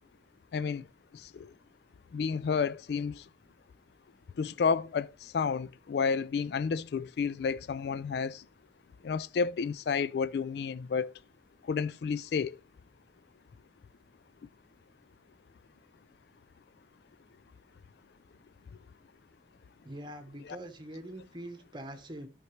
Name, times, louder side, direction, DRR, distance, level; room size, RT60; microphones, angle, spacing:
voice 1, 0.5-0.8 1.4-1.5 2.1-3.2 4.4-5.1 5.3-8.4 9.0-11.1 11.7-12.5 20.4-20.6, left 5 dB, 60° left, 0.3 m, -30 dB
voice 2, 19.8-22.3, right 1 dB, 25° right, 1.1 m, -43 dB
12.0 x 5.9 x 3.2 m
head